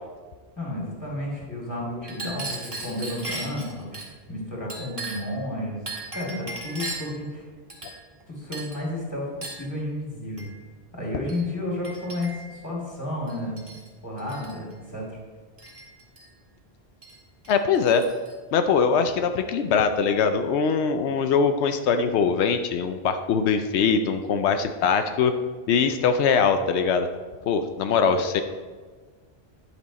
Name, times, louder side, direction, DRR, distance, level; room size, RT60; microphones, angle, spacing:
voice 1, 0.6-5.8 6.1-7.4 8.3-10.5 10.9-13.6 14.0-15.2, left 1 dB, 15° left, -4 dB, 2.7 m, -32 dB
Chink clink, 2.0-4.1 4.7-5.4 5.9-7.2 7.7-8.2 8.5-8.8 9.4-9.7 10.4-10.5 11.3-11.4 11.8-12.5 13.3-13.9 14.2-14.5 15.6-16.3 17.0-17.2 17.4-18.3, right 2 dB, 30° right, 2.0 m, -37 dB
voice 2, 17.5-18.1 18.5-25.3 25.7-27.1 27.5-28.4, left 6 dB, 90° left, 8 dB, 0.9 m, -22 dB
10.5 x 6.3 x 4.0 m, 1.4 s
omnidirectional pair, 1.1 m